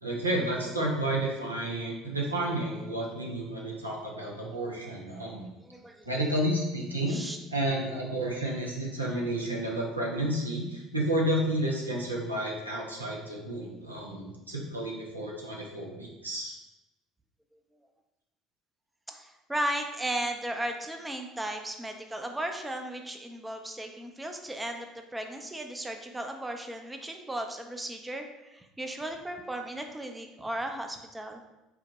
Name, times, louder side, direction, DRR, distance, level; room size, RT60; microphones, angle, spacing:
voice 1, 0.0-5.5 6.0-7.2 7.5-16.5, right 1 dB, 90° right, -3 dB, 0.6 m, -31 dB
voice 2, 5.6-6.4 7.1-7.4 19.1-31.4, right 1 dB, 10° right, 4 dB, 0.5 m, -36 dB
4.6 x 2.1 x 3.9 m, 0.99 s
figure-of-eight pair, 60°, 0 cm